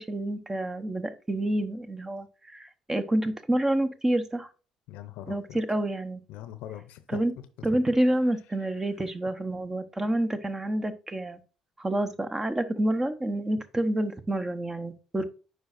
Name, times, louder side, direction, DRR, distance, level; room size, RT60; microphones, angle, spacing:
voice 1, 0.0-4.5 5.3-6.2 7.1-7.3 7.6-11.4 11.8-15.2, right 1 dB, 20° right, 0.9 m, -28 dB
voice 2, 4.9-5.6 6.3-7.2 15.2-15.3, left 12 dB, 70° left, 0.7 m, -41 dB
9.3 x 4.8 x 2.6 m
hypercardioid pair, 55°, 2 cm